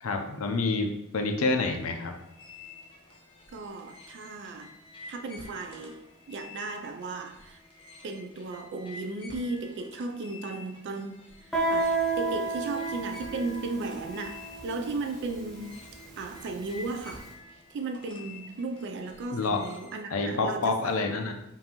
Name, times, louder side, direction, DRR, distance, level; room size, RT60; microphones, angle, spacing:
voice 1, 0.0-2.1 19.3-19.6 20.1-21.3, left 3 dB, 70° left, 4 dB, 0.6 m, -28 dB
sound 1, 1.6-20.0, left 3 dB, 25° left, 0.7 m, -50 dB
voice 2, 3.5-4.7 5.1-6.0 6.3-7.6 8.0-17.3 17.7-21.1, right 3 dB, 55° right, 6 dB, 0.3 m, -36 dB
Guitar, 11.5-17.0, right 3 dB, ahead, 1.0 m, -32 dB
5.3 x 2.6 x 2.9 m, 0.86 s
head